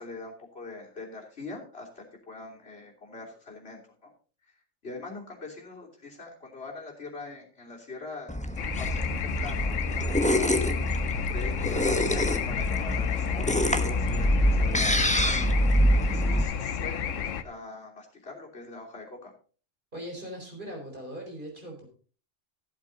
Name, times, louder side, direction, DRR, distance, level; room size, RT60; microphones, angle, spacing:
voice 1, 0.0-4.1 4.8-15.6 15.9-19.3, left 3 dB, 50° left, -1 dB, 3.5 m, -43 dB
sound 1, 8.3-16.4, equal, 5° left, 0.8 m, -25 dB
sound 2, 8.6-17.4, left 7 dB, 80° left, 1.1 m, -31 dB
voice 2, 19.9-21.8, equal, 40° right, 1 dB, 4.2 m, -40 dB
14.5 x 8.0 x 4.0 m, 0.39 s
omnidirectional pair, 1.3 m